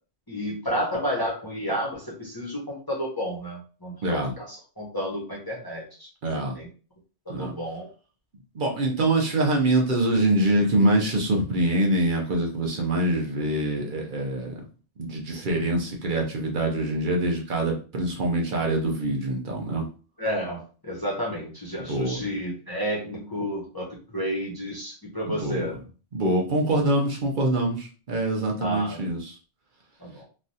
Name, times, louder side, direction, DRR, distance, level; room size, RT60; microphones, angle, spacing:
voice 1, 0.3-6.1 6.6-6.7 7.3-7.9 20.2-25.7 28.6-29.0 30.0-30.2, equal, 20° left, -4 dB, 0.8 m, -31 dB
voice 2, 4.0-4.3 6.2-6.6 7.3-7.5 8.5-14.6 15.0-19.8 21.8-22.2 25.3-25.7 26.1-29.4, right 1 dB, 50° right, 0 dB, 0.8 m, -24 dB
3.2 x 2.3 x 2.7 m, 0.37 s
omnidirectional pair, 1.2 m